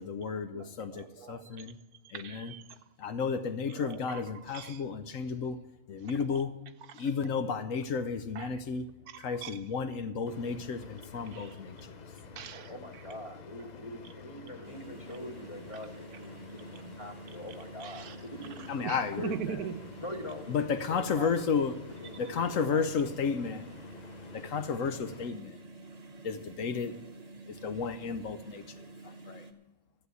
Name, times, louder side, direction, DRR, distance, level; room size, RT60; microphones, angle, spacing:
voice 1, 0.0-1.8 2.1-2.5 3.0-5.6 5.9-6.5 7.0-8.9 9.2-12.0 18.7-19.3 20.5-21.7 22.2-23.6 24.3-25.6 26.2-27.0 27.5-28.6 29.0-29.4, left 5 dB, 65° left, 1.0 m, -32 dB
voice 2, 0.5-1.7 2.1-2.8 3.7-4.8 6.0-6.5 6.8-7.1 8.3-8.6 9.1-9.6 11.3-13.2 13.6-13.7 14.6-14.7 17.8-18.2 18.6-20.0, right 7 dB, 80° right, 1.3 m, -43 dB
sound 1, 10.3-25.3, left 6 dB, 45° left, 0.5 m, -49 dB
voice 3, 12.7-18.8 20.0-22.9 23.3-23.4, equal, 25° left, 1.1 m, -44 dB
sound 2, 14.6-29.5, right 3 dB, 30° right, 0.8 m, -49 dB
13.5 x 7.9 x 8.1 m
omnidirectional pair, 1.6 m